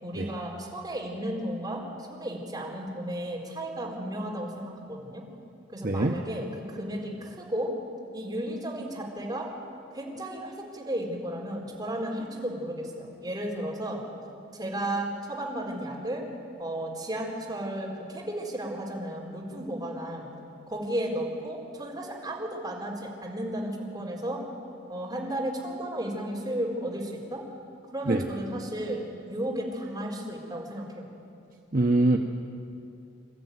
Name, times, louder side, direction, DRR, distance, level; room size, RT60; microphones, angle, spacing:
voice 1, 0.0-5.2 5.7-7.7 8.1-9.5 9.9-14.0 14.5-16.2 16.6-20.3 20.7-24.4 24.9-27.4 27.9-31.1, right 1 dB, 20° right, -3 dB, 4.1 m, -34 dB
voice 2, 5.8-6.1 28.1-28.2 31.7-32.2, right 2 dB, 50° right, 2 dB, 1.0 m, -23 dB
27.0 x 13.5 x 9.4 m, 2.6 s
head